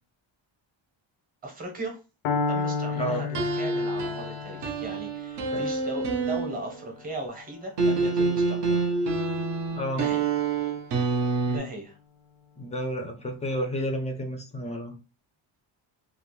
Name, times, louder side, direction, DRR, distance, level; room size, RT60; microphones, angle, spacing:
voice 1, 1.4-2.0 2.5-8.9 10.0-10.2 11.5-12.0, right 2 dB, 20° right, 2 dB, 0.7 m, -38 dB
Piano, 2.2-10.2, left 5 dB, 80° left, 0.6 m, -34 dB
voice 2, 2.9-3.2 5.5-5.6 9.7-10.0 12.6-14.9, equal, 15° left, 3 dB, 0.3 m, -31 dB
sound 1, 3.3-6.9 7.8-11.6, right 3 dB, 60° right, 0.5 m, -27 dB
2.3 x 2.0 x 3.0 m, 0.32 s
wide cardioid pair, 175°, 49 cm